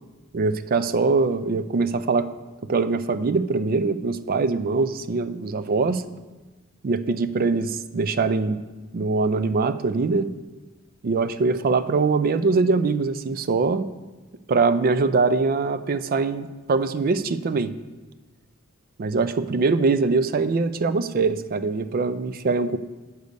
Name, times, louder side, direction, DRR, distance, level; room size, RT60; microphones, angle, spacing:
voice 1, 0.3-2.3 2.7-6.0 6.8-8.6 8.9-10.3 11.0-13.9 14.5-17.7 19.0-22.8, right 4 dB, 45° right, 12 dB, 0.4 m, -23 dB
8.1 x 6.7 x 5.2 m, 1.2 s
head